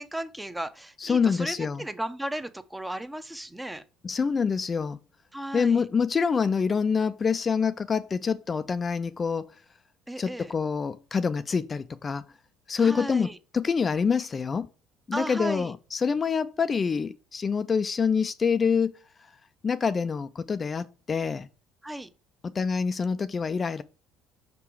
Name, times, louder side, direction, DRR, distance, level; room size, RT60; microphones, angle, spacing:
voice 1, 0.0-3.8 5.3-5.9 10.1-10.5 12.8-13.4 15.1-15.7 21.8-22.1, right 1 dB, 10° right, 0.7 m, -35 dB
voice 2, 1.0-1.8 4.0-5.0 5.5-9.5 10.2-12.2 12.7-13.3 13.5-14.7 15.1-18.9 19.6-21.5 22.5-23.8, left 6 dB, 35° left, 0.3 m, -26 dB
5.8 x 3.6 x 4.6 m
hypercardioid pair, 70°, 0 cm